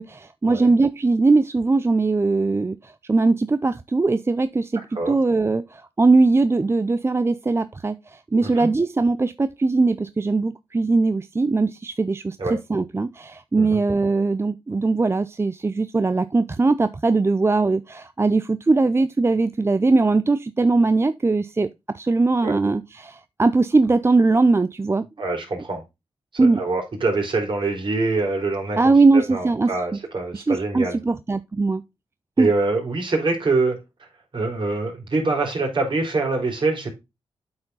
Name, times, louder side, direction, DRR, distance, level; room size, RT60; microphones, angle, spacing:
voice 1, 0.0-21.7 21.9-25.1 26.4-26.6 28.8-29.7 30.3-31.8 32.4-32.5, right 3 dB, 25° right, 0.5 m, -20 dB
voice 2, 25.2-25.8 26.3-31.0 32.4-33.8 34.3-36.9, right 3 dB, 55° right, 3.7 m, -24 dB
8.6 x 4.5 x 4.0 m
cardioid pair, 60°, 10 cm